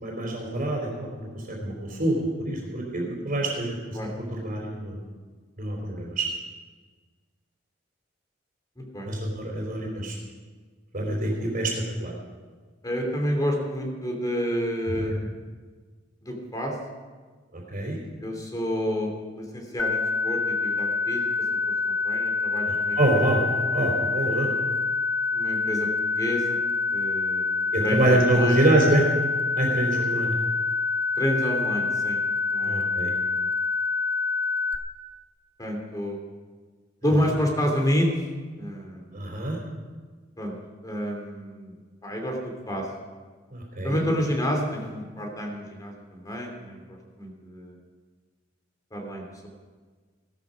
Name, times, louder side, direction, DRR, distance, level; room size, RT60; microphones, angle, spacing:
voice 1, 0.0-3.8 4.3-5.0 5.6-6.3 9.1-10.2 10.9-11.7 12.0-12.1 17.5-18.0 22.7-23.4 23.7-24.5 27.7-29.0 29.6-30.3 32.6-33.1 39.1-39.6 43.5-44.0, right 1 dB, 45° right, -4 dB, 3.5 m, -25 dB
voice 2, 8.8-9.1 11.4-11.5 12.8-15.3 16.2-16.7 18.2-21.2 21.8-23.0 23.3-23.4 25.3-25.9 26.1-26.6 26.9-28.6 31.2-32.2 32.5-33.4 35.6-36.2 37.0-38.2 38.6-39.2 40.4-40.5 40.8-41.8 42.0-42.4 42.7-42.9 43.8-47.8 48.9-49.5, equal, 20° left, 2 dB, 2.8 m, -29 dB
sound 1, 19.8-34.8, left 4 dB, 85° left, 0.8 m, -26 dB
17.0 x 13.0 x 5.2 m, 1.5 s
head